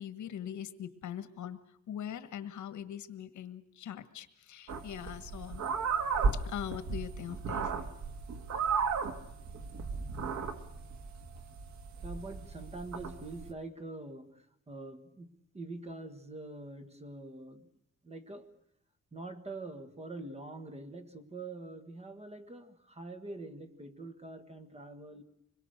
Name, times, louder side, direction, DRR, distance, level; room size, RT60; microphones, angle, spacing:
voice 1, 0.0-1.6 1.9-5.6 6.3-7.7, left 9 dB, 80° left, 12 dB, 1.5 m, -41 dB
sound 1, 4.7-13.5, right 5 dB, 75° right, 1.7 m, -35 dB
voice 2, 12.0-17.7 18.0-18.5 19.1-25.2, right 2 dB, 20° right, 8 dB, 1.7 m, -45 dB
25.5 x 22.0 x 6.6 m, 0.79 s
wide cardioid pair, 150°, 29 cm